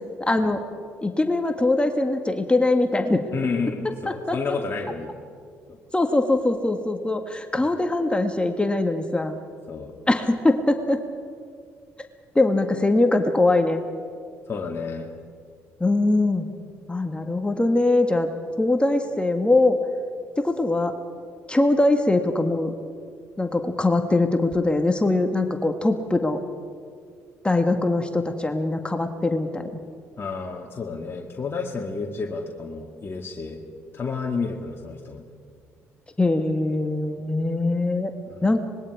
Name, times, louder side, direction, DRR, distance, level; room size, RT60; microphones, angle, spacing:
voice 1, 0.2-0.6 1.0-3.3 4.1-4.4 5.9-9.4 10.1-11.0 12.4-13.8 15.8-16.5 16.9-18.3 18.6-19.8 20.4-20.9 21.5-22.7 23.4-26.4 27.4-29.8 36.2-38.1 38.4-38.6, left 2 dB, 15° left, 5 dB, 1.8 m, -22 dB
voice 2, 3.3-5.1 5.7-5.8 7.6-7.8 9.7-9.9 14.5-15.1 30.2-33.6 33.9-35.2 38.3-38.5, left 4 dB, 35° left, 0 dB, 2.2 m, -30 dB
25.0 x 21.5 x 4.9 m, 2.2 s
hypercardioid pair, 50°, 7 cm